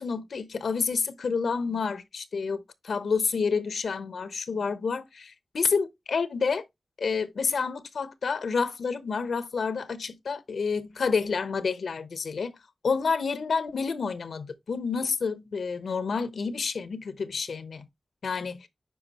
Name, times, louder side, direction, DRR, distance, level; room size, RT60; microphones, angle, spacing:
voice 1, 0.0-6.7 7.0-12.5 12.8-17.9 18.2-18.7, left 5 dB, 85° left, 0.9 m, -29 dB
9.4 x 5.0 x 3.0 m
wide cardioid pair, 70°, 0 cm